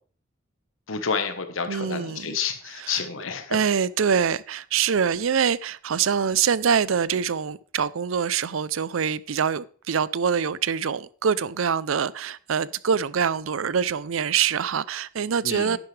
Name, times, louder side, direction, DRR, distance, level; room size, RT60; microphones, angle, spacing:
voice 1, 0.9-3.6 15.4-15.8, left 6 dB, 85° left, 1.2 m, -29 dB
voice 2, 1.7-2.4 2.8-3.0 3.5-15.8, right 7 dB, 90° right, 0.5 m, -24 dB
10.5 x 10.5 x 3.3 m
head